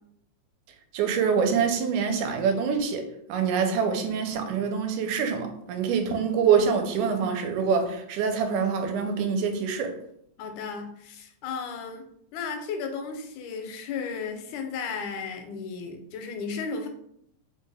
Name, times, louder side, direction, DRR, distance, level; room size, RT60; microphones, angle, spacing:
voice 1, 0.9-10.0, right 6 dB, 90° right, 4 dB, 2.0 m, -25 dB
voice 2, 10.4-12.1 12.3-16.9, left 5 dB, 85° left, 5 dB, 2.0 m, -34 dB
4.7 x 2.2 x 3.3 m, 0.74 s
omnidirectional pair, 3.4 m